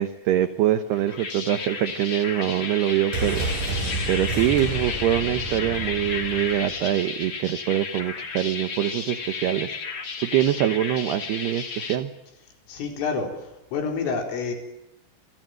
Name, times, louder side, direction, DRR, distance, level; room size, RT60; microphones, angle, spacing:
voice 1, 0.0-12.1, right 12 dB, 70° right, 10 dB, 2.8 m, -24 dB
sound 1, 0.9-12.0, left 5 dB, 35° left, 2.9 m, -33 dB
sound 2, 3.1-6.9 7.2-7.3, right 2 dB, 40° right, 7.6 m, -30 dB
voice 2, 12.7-14.5, left 5 dB, 85° left, 3 dB, 6.8 m, -28 dB
29.0 x 24.5 x 7.8 m, 0.87 s
omnidirectional pair, 5.7 m